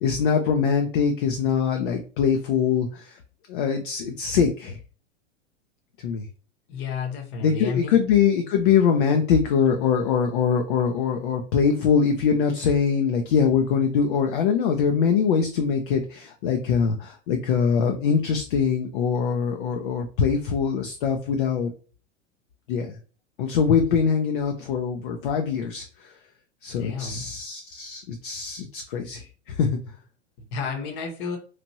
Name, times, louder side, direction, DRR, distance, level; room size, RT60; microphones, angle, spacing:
voice 1, 0.0-3.2 3.5-4.8 6.0-6.3 7.4-21.7 22.7-23.0 23.4-26.1 26.6-29.8, left 6 dB, 45° left, 4 dB, 0.5 m, -23 dB
voice 2, 6.7-8.0 26.8-27.2 30.5-31.4, left 5 dB, 30° left, 3 dB, 0.9 m, -31 dB
3.0 x 2.5 x 2.7 m, 0.38 s
figure-of-eight pair, 95°, 36 cm